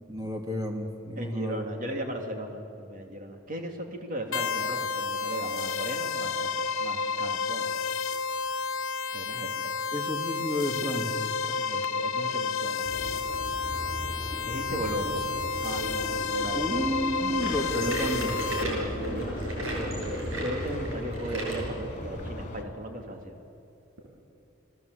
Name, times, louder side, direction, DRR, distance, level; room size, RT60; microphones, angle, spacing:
voice 1, 0.1-1.7 9.9-11.3 16.5-18.3, equal, 20° right, 3 dB, 2.6 m, -31 dB
voice 2, 1.2-6.5 6.8-7.7 9.1-9.8 11.4-12.9 14.5-15.3 15.6-16.7 17.2-17.3 17.8-23.3, right 1 dB, 40° right, 3 dB, 3.0 m, -37 dB
sound 1, 4.3-18.6, left 5 dB, 70° left, 1.2 m, -31 dB
sound 2, 12.8-22.6, left 1 dB, 35° left, 3.1 m, -37 dB
sound 3, 17.4-21.6 22.2-22.3 23.0-23.1 24.0-24.1, right 1 dB, 75° right, 7.4 m, -35 dB
29.5 x 20.0 x 8.2 m, 2.6 s
head